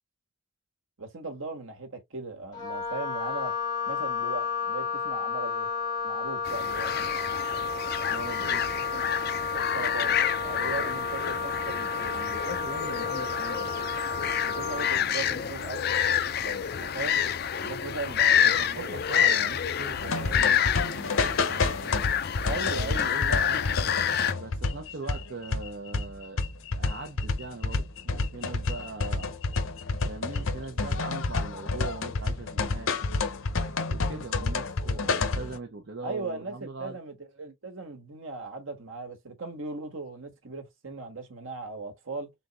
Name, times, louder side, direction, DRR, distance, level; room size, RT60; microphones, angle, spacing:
voice 1, 1.0-3.6 3.9-5.7 6.0-7.1 8.9-9.0 9.5-12.3 14.4-15.9 16.4-17.2 17.6-19.0 22.4-23.2 34.5-34.6 36.0-42.3, right 3 dB, 80° right, 1.5 m, -38 dB
Wind instrument woodwind instrument, 2.5-15.0, left 5 dB, 20° left, 2.0 m, -32 dB
sound 1, 6.4-24.3, left 8 dB, 50° left, 0.5 m, -28 dB
voice 2, 8.1-8.7 12.1-13.7 18.4-22.0 22.5-23.6 24.3-26.4 26.7-29.3 30.0-32.9 33.9-37.0, right 3 dB, 60° right, 0.8 m, -40 dB
sound 2, 20.0-35.6, left 3 dB, 85° left, 0.8 m, -29 dB
4.0 x 3.6 x 2.9 m
head